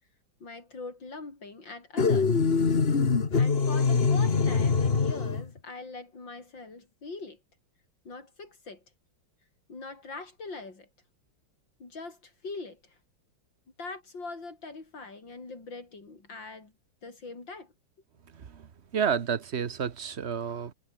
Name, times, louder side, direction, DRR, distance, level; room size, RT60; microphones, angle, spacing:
voice 1, 0.4-2.4 3.3-7.4 8.1-8.8 9.7-10.9 11.8-13.0 13.8-16.7 17.0-17.7, left 3 dB, 60° left, 5.3 m, -42 dB
sound 1, 2.0-5.5, left 5 dB, 30° left, 1.6 m, -24 dB
voice 2, 18.3-18.7 18.9-20.7, right 7 dB, 45° right, 1.0 m, -30 dB
omnidirectional pair, 2.3 m